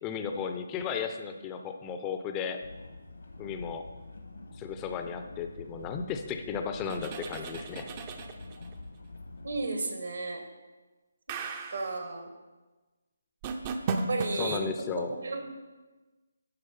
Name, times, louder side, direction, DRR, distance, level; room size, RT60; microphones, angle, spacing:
voice 1, 0.0-2.6 3.4-3.8 4.6-7.9 14.4-15.1, left 6 dB, 15° left, 6 dB, 0.6 m, -34 dB
sound 1, 2.6-9.7, left 2 dB, 70° left, 1.4 m, -46 dB
sound 2, 6.8-8.7 11.3-11.9 13.4-14.6, right 4 dB, 25° right, 0.6 m, -35 dB
voice 2, 9.4-10.4 11.7-12.3 14.0-14.6 15.0-15.5, right 3 dB, 65° right, 4 dB, 1.5 m, -33 dB
11.0 x 4.8 x 5.7 m, 1.2 s
figure-of-eight pair, 145°, 0 cm